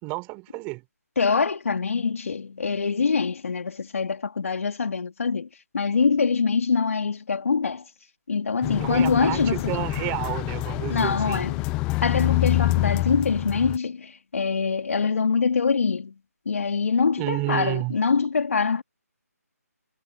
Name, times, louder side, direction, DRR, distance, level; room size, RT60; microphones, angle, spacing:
voice 1, 0.0-0.8 8.8-11.4 17.2-17.9, right 26 dB, 15° right, 4.3 m, -30 dB
voice 2, 1.2-5.5 5.7-7.8 8.3-9.8 10.9-16.1 16.5-18.8, left 5 dB, 55° left, 3.7 m, -24 dB
sound 1, 8.6-13.8, left 23 dB, 10° left, 0.3 m, -26 dB
figure-of-eight pair, 155°, 9 cm